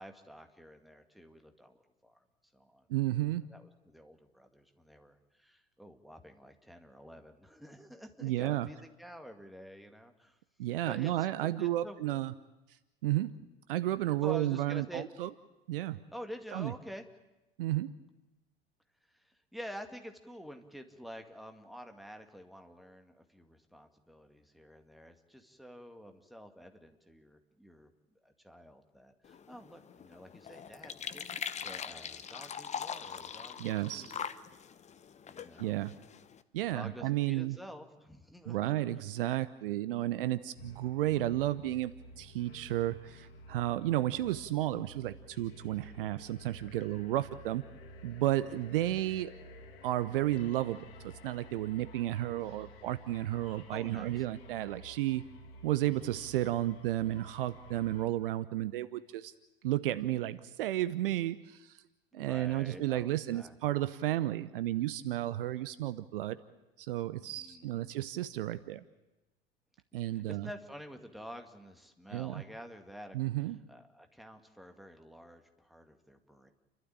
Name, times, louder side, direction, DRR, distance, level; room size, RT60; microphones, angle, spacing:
voice 1, 0.0-2.2 2.5-2.9 3.5-10.4 10.9-11.1 11.4-11.9 14.2-15.1 16.1-17.0 19.1-27.9 28.2-31.2 31.6-34.2 35.3-35.8 36.7-38.8 46.8-47.1 48.5-48.7 53.7-54.3 62.1-63.8 67.2-68.0 70.1-76.5, equal, ahead, 5 dB, 2.1 m, -49 dB
voice 2, 2.9-3.5 8.2-8.7 10.6-12.3 13.0-13.3 13.7-15.3 15.7-16.0 16.5-16.7 17.6-17.9 33.6-34.1 35.6-35.9 36.5-37.6 38.5-47.6 48.0-49.3 49.8-55.2 55.6-59.3 59.6-61.8 62.1-66.4 66.8-68.8 69.9-70.5 72.1-72.4 73.1-73.6, right 14 dB, 60° right, 15 dB, 0.8 m, -32 dB
sound 1, 29.2-36.4, left 7 dB, 20° left, 1.0 m, -42 dB
sound 2, 40.6-58.1, equal, 65° left, 2.2 m, -52 dB
30.0 x 12.5 x 8.7 m, 1.0 s
figure-of-eight pair, 75°, 31 cm